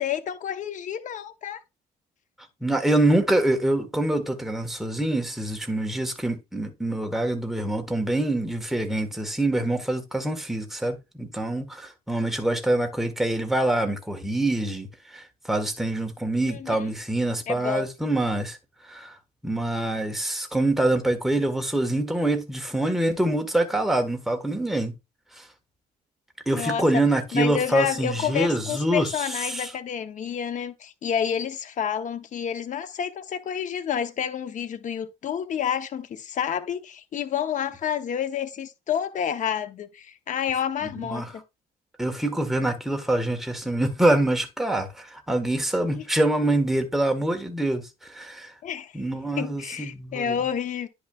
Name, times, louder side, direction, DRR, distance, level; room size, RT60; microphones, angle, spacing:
voice 1, 0.0-1.6 16.5-16.7 17.5-17.9 26.5-26.8 27.3-41.4 45.9-46.0 48.6-48.9 49.4-50.9, left 8 dB, 50° left, 0.9 m, -29 dB
voice 2, 2.6-18.6 18.9-19.1 19.4-24.9 25.4-25.5 26.5-29.7 41.0-41.3 42.0-48.5 48.9-50.4, right 1 dB, ahead, 1.5 m, -25 dB
10.0 x 5.7 x 2.4 m
cardioid pair, 110°, 17 cm